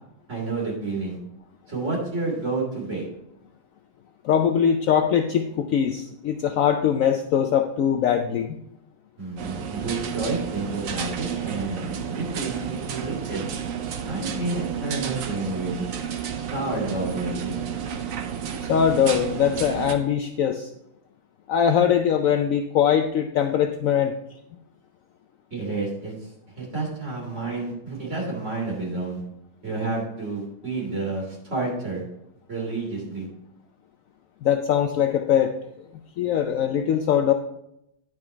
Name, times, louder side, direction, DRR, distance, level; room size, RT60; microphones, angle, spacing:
voice 1, 0.3-1.2 1.7-3.1 9.2-13.4 14.1-15.9 16.4-17.6 25.5-29.2 29.6-32.0 32.5-33.3, right 3 dB, 45° right, -3 dB, 3.5 m, -30 dB
voice 2, 4.2-8.6 18.7-20.7 21.5-24.1 34.4-35.5 36.2-37.3, left 8 dB, 70° left, 6 dB, 0.8 m, -21 dB
sound 1, 9.4-19.9, right 8 dB, 60° right, 1.0 m, -31 dB
10.5 x 4.8 x 4.4 m, 0.79 s
omnidirectional pair, 1.8 m